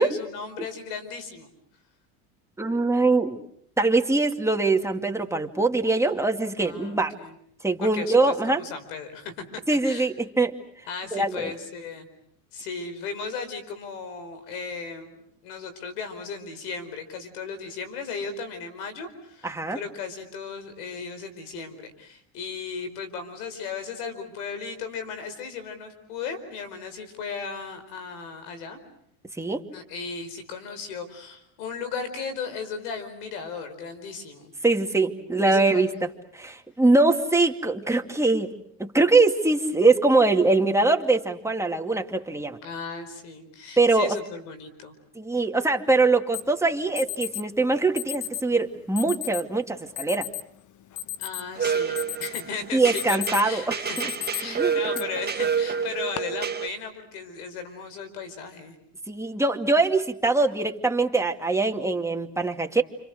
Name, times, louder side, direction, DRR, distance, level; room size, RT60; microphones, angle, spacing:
voice 1, 0.0-1.5 6.6-7.3 7.8-10.1 10.9-12.1 12.5-15.1 15.4-28.8 29.7-34.5 35.4-36.0 42.6-44.9 51.2-58.8, left 5 dB, 85° left, 10 dB, 4.9 m, -36 dB
voice 2, 2.6-3.4 3.8-7.2 7.6-8.6 9.7-10.6 11.1-11.5 19.4-19.8 29.4-29.6 34.6-35.9 36.3-38.5 38.8-42.6 43.8-44.2 45.2-50.3 52.7-53.8 54.6-54.8 59.1-62.8, right 3 dB, 5° right, 3 dB, 2.3 m, -22 dB
Alarm, 46.3-46.4 47.0-47.4 48.0-48.4 49.0-49.4 50.0-50.4 50.8-51.6 52.0-52.5 52.8-53.5 54.0-54.4 54.9-55.0 55.8-56.2, left 13 dB, 40° left, 1.1 m, -33 dB
sound 1, 51.6-56.7, right 7 dB, 20° right, 1.6 m, -29 dB
29.5 x 27.0 x 6.5 m, 0.69 s
supercardioid pair, 100°, 44 cm